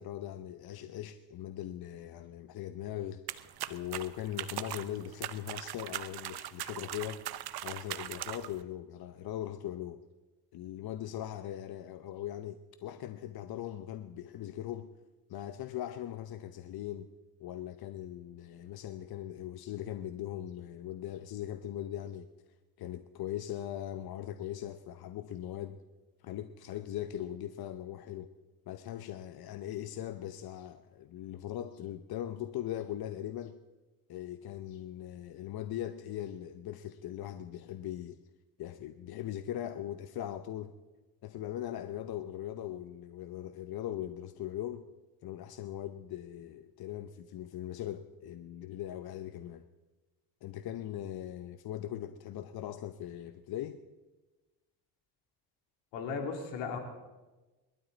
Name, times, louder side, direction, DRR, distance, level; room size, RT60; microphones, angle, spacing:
voice 1, 0.0-3.2 3.7-7.2 7.6-10.0 10.5-14.9 15.3-17.1 17.4-22.3 22.8-25.8 26.2-28.3 28.7-33.6 34.1-38.2 38.6-40.7 41.2-44.8 45.2-49.7 50.4-53.8, left 11 dB, 60° left, 0.9 m, -40 dB
sound 1, 3.3-8.6, right 13 dB, 65° right, 0.9 m, -40 dB
voice 2, 55.9-56.8, left 5 dB, 85° left, 3.0 m, -36 dB
27.0 x 12.5 x 4.0 m
cardioid pair, 85°, 42 cm